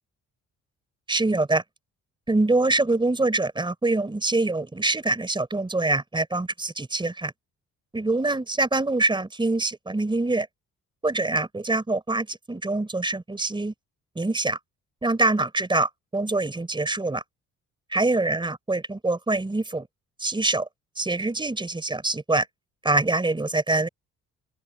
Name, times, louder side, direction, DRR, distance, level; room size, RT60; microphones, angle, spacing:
voice 1, 1.1-1.6 2.3-7.3 7.9-10.5 11.0-13.7 14.2-14.6 15.0-17.2 17.9-19.9 20.2-20.7 21.0-22.5 22.8-23.9, right 2 dB, 15° right, 4.0 m, -24 dB
open air
cardioid pair, 90°, 30 cm